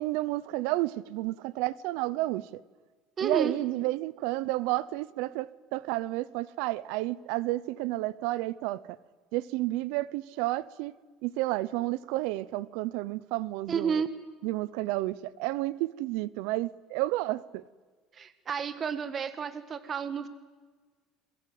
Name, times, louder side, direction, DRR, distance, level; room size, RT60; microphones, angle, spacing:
voice 1, 0.0-2.6 3.2-8.8 9.3-11.0 11.2-14.0 14.4-17.6, right 18 dB, 80° right, 0.8 m, -31 dB
voice 2, 3.2-3.6 13.7-14.1 18.1-20.3, right 6 dB, 35° right, 1.6 m, -31 dB
27.0 x 22.5 x 7.8 m
supercardioid pair, 110°, 0 cm